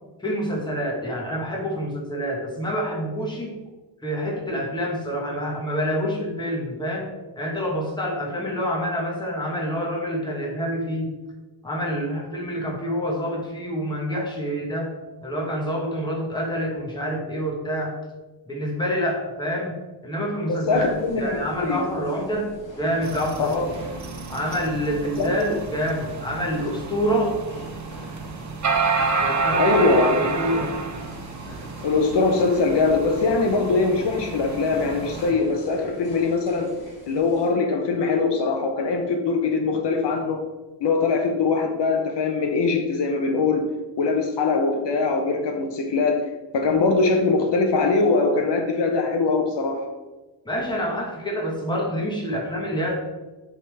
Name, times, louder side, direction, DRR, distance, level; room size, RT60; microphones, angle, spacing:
voice 1, 0.2-3.6 4.0-11.2 11.6-14.9 15.2-18.0 18.5-19.8 20.0-23.6 24.3-27.4 29.2-29.8 30.1-30.7 50.4-52.9, equal, 10° left, -2 dB, 1.3 m, -27 dB
voice 2, 20.5-22.2 23.4-23.7 25.2-25.3 29.6-30.1 31.8-36.7 37.1-40.4 40.8-43.7 44.0-46.2 46.5-49.8, left 4 dB, 70° left, 3 dB, 0.9 m, -22 dB
sound 1, 20.7-37.5, left 1 dB, 45° left, 1.8 m, -43 dB
sound 2, 23.0-35.3, right 4 dB, 40° right, 0.7 m, -29 dB
8.0 x 3.7 x 3.4 m, 1.1 s
wide cardioid pair, 145°, 45 cm